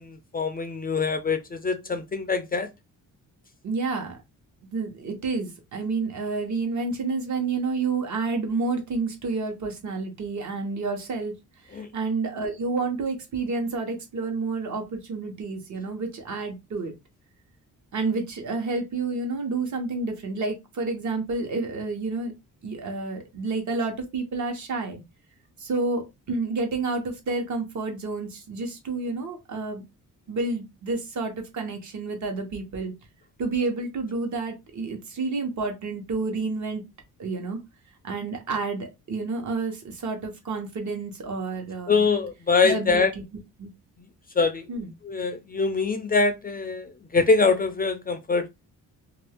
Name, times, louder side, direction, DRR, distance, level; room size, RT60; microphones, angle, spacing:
voice 1, 0.0-2.7 11.7-11.9 41.9-43.1 44.4-44.7 45.0-48.5, left 4 dB, 25° left, 0.4 m, -24 dB
voice 2, 3.6-4.2 4.7-11.3 11.7-16.9 17.9-22.3 22.6-25.0 25.6-29.8 30.3-32.9 33.4-36.9 37.2-37.6 38.0-42.1 42.6-43.2 43.6-43.7 44.7-44.9, right 3 dB, 55° right, 1.1 m, -29 dB
2.5 x 2.3 x 3.3 m
cardioid pair, 95°, 34 cm